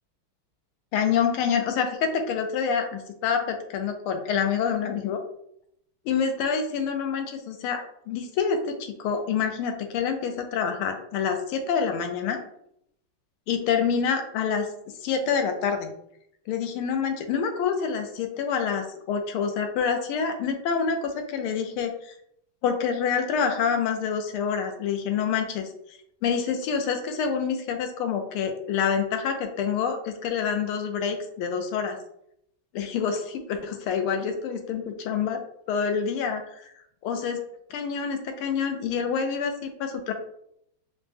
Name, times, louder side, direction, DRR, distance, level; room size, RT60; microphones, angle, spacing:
voice 1, 0.9-5.2 6.1-12.4 13.5-14.7 15.0-15.9 16.5-21.9 22.6-25.7 26.2-32.0 32.7-35.4 35.7-36.4 37.0-37.4 37.7-40.1, left 6 dB, 80° left, 6 dB, 1.5 m, -27 dB
5.0 x 2.1 x 3.3 m, 0.73 s
omnidirectional pair, 2.4 m